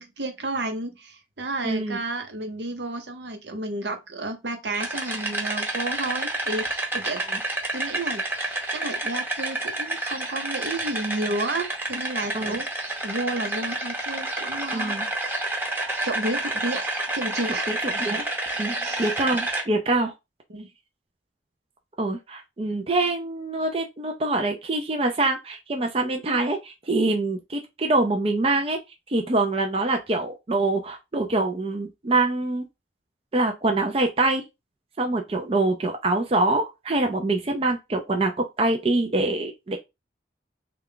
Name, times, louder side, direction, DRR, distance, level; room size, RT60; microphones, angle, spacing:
voice 1, 0.0-7.2 7.7-12.7 13.0-15.0 16.0-16.8 17.1-17.7 18.8-19.1 20.5-20.7, right 2 dB, 75° right, 0.8 m, -31 dB
voice 2, 1.6-2.0 12.3-12.6 14.7-15.1 17.7-18.3 18.6-20.1 22.0-28.8 29.1-32.7 33.3-34.4 35.0-39.8, right 2 dB, 35° right, 0.5 m, -25 dB
sound 1, 4.7-19.6, right 1 dB, 10° right, 0.8 m, -29 dB
3.3 x 2.3 x 3.7 m
head